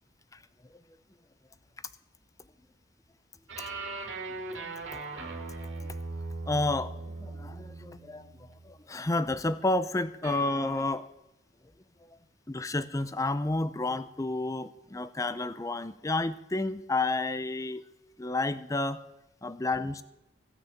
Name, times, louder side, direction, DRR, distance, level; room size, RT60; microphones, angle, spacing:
sound 1, 3.5-8.7 10.2-10.9, right 3 dB, 75° right, 2.5 m, -39 dB
voice 1, 4.5-5.1 5.8-6.0 6.5-11.1 12.1-12.2 12.5-17.8 18.2-19.0 19.4-20.0, left 2 dB, 15° left, 14 dB, 0.5 m, -31 dB
16.5 x 6.1 x 8.6 m, 0.95 s
head